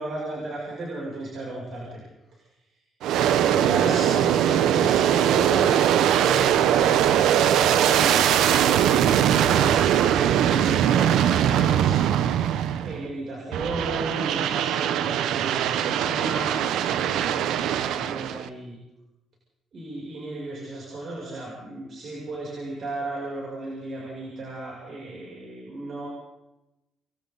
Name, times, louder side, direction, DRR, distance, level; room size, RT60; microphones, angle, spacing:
voice 1, 0.0-2.0 3.4-8.4 8.7-12.1 12.8-18.8 19.7-26.1, right 2 dB, 55° right, -3 dB, 7.3 m, -34 dB
Aircraft, 3.0-13.0 13.5-18.5, right 10 dB, 85° right, 0.9 m, -21 dB
28.5 x 22.0 x 4.1 m, 0.96 s
cardioid pair, 90°, 0 cm